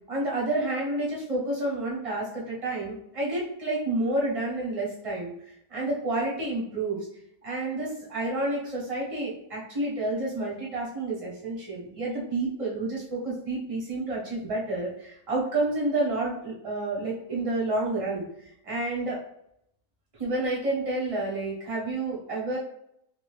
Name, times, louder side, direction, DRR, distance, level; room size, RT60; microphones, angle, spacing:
voice 1, 0.1-5.3 5.7-7.0 7.4-18.3 18.6-19.2 20.2-22.6, right 2 dB, 25° right, -6 dB, 0.9 m, -29 dB
2.7 x 2.4 x 3.1 m, 0.74 s
omnidirectional pair, 1.8 m